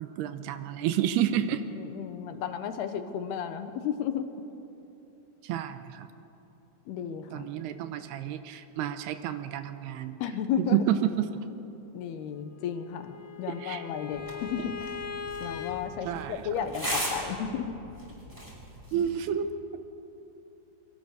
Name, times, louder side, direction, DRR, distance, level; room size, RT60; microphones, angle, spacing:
voice 1, 0.0-1.6 5.4-6.1 7.3-10.2 10.6-11.4 13.6-13.8 16.0-16.4 18.9-19.8, right 10 dB, 80° right, 9 dB, 2.9 m, -30 dB
voice 2, 1.8-4.3 6.9-7.4 10.2-10.9 11.9-14.7 15.4-17.8, left 8 dB, 75° left, 9 dB, 3.1 m, -33 dB
Bowed string instrument, 12.6-15.8, left 7 dB, 60° left, 1.4 m, -39 dB
sound 1, 14.1-19.1, equal, 5° right, 4.9 m, -38 dB
27.5 x 22.5 x 6.8 m, 2.9 s
omnidirectional pair, 4.8 m